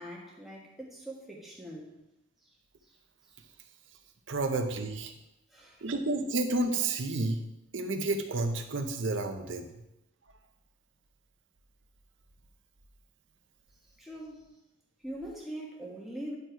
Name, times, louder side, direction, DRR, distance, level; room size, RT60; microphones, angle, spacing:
voice 1, 0.0-2.0 2.4-2.6 2.8-3.4 5.5-5.9 13.8-14.5 15.0-16.4, right 1 dB, ahead, -3 dB, 1.4 m, -43 dB
voice 2, 4.3-5.1 5.8-7.4 7.7-9.7, right 2 dB, 70° right, 5 dB, 0.8 m, -30 dB
9.7 x 4.6 x 4.5 m, 0.89 s
head